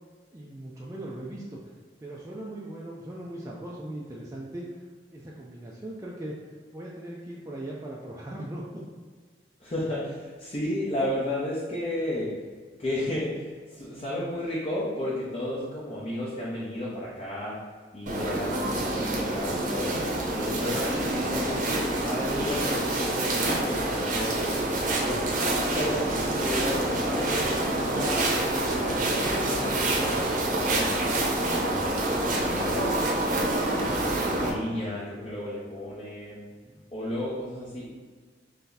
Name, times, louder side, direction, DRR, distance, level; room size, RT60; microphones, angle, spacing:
voice 1, 0.3-1.6 2.0-4.7 5.1-6.3 6.7-8.8 33.1-33.3 36.5-36.8, right 1 dB, 20° right, -4 dB, 0.3 m, -39 dB
voice 2, 9.6-12.3 12.8-17.6 17.9-25.3 25.7-28.3 28.8-31.0 31.5-32.9 33.7-36.4 36.9-38.0, left 1 dB, 35° left, -7 dB, 0.6 m, -33 dB
sound 1, 18.1-34.5, right 1 dB, 45° right, 0.7 m, -27 dB
3.4 x 2.7 x 3.8 m, 1.5 s
head